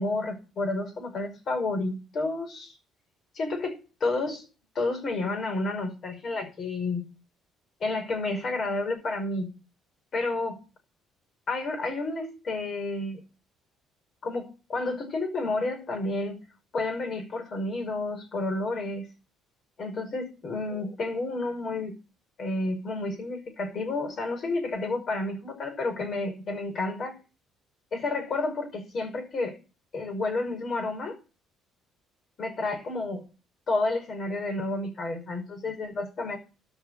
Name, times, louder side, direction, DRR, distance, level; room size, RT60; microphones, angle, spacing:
voice 1, 0.0-2.8 3.3-4.4 4.7-7.1 7.8-9.5 10.1-10.6 11.5-13.2 14.2-16.4 16.7-19.1 19.8-22.0 22.4-27.1 27.9-29.6 29.9-31.2 32.4-33.2 33.7-36.4, left 2 dB, 45° left, 4 dB, 5.6 m, -30 dB
13.0 x 5.7 x 9.2 m, 0.32 s
cardioid pair, 110°, 0 cm